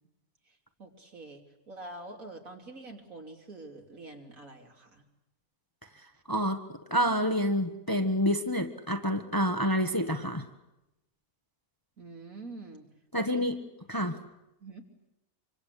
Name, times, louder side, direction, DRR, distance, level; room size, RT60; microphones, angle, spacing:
voice 1, 0.5-5.0 12.0-12.9 13.1-13.5 14.6-14.8, right 2 dB, 65° right, 2 dB, 3.5 m, -46 dB
voice 2, 6.3-6.6 6.9-10.4 13.1-13.5 13.9-14.2, equal, 15° left, 6 dB, 1.1 m, -28 dB
25.5 x 25.0 x 8.4 m, 0.93 s
omnidirectional pair, 1.5 m